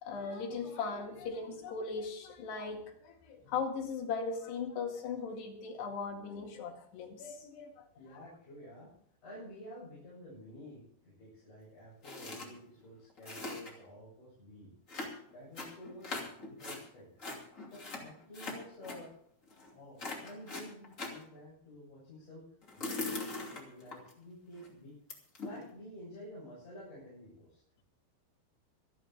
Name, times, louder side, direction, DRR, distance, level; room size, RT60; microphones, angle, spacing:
voice 1, 0.0-7.9 8.1-8.2, left 5 dB, 75° left, 2 dB, 4.2 m, -38 dB
voice 2, 8.0-8.9 9.2-14.7 15.3-17.1 17.7-19.1 19.7-22.4 22.7-25.0 25.4-27.6, equal, 45° left, -9 dB, 9.4 m, -51 dB
sound 1, 12.0-12.5 12.8-12.9 13.1-13.9 14.9-16.8 17.2-19.0 19.5-19.7 20.0-21.2 22.6-24.1 24.6-24.7 25.1-25.7, left 2 dB, 20° left, 2.4 m, -41 dB
26.5 x 9.7 x 3.6 m, 0.67 s
omnidirectional pair, 4.8 m